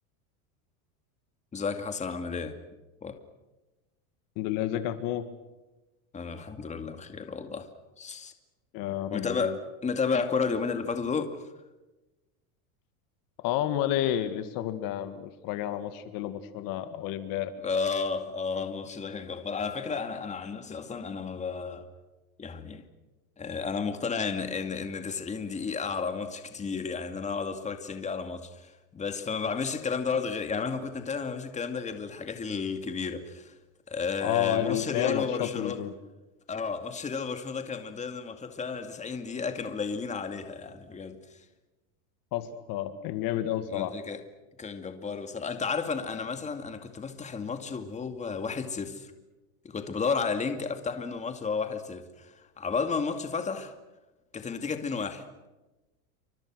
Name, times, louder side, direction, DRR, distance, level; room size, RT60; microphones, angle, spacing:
voice 1, 1.5-2.5 3.0-3.2 6.1-7.7 8.0-8.3 9.1-11.5 17.6-21.9 22.4-22.8 23.4-33.5 33.9-35.8 36.5-41.2 43.7-44.2 44.6-49.1 49.6-53.7 54.3-55.5, left 5 dB, 15° left, 2.4 m, -32 dB
voice 2, 4.4-5.3 8.7-9.6 13.4-17.5 34.2-35.9 42.3-43.9, left 12 dB, 50° left, 2.2 m, -30 dB
29.0 x 25.5 x 6.4 m
supercardioid pair, 135°, 43 cm